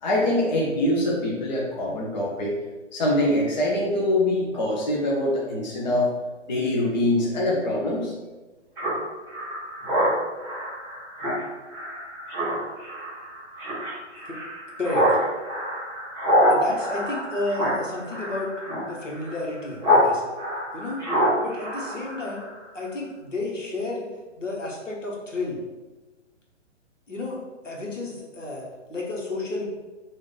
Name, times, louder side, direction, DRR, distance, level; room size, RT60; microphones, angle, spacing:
voice 1, 0.0-2.5 2.9-6.1 6.5-8.1, left 1 dB, 35° left, -4 dB, 0.6 m, -24 dB
Speech synthesizer, 8.8-20.1 20.4-22.6, equal, 10° right, 1.5 m, -26 dB
voice 2, 16.5-18.5 18.9-20.2 20.7-21.0 21.4-22.4 22.7-24.1 24.4-25.6 27.1-27.4 27.6-29.6, left 2 dB, 75° left, -3 dB, 1.2 m, -31 dB
3.1 x 2.6 x 3.9 m, 1.2 s
figure-of-eight pair, 130°, 37 cm